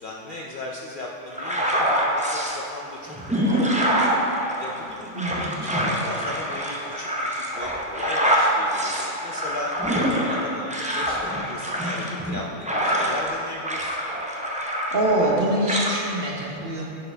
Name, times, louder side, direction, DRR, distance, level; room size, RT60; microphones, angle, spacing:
voice 1, 0.0-4.2 4.6-14.0, left 2 dB, 55° left, -2 dB, 0.6 m, -36 dB
sound 1, 1.3-2.6 3.1-13.3 13.6-15.4 15.7-15.9, equal, 10° right, 0.3 m, -25 dB
voice 2, 5.2-5.5 14.9-16.8, right 1 dB, 50° right, -3 dB, 1.1 m, -24 dB
10.0 x 4.9 x 3.3 m, 2.9 s
omnidirectional pair, 1.3 m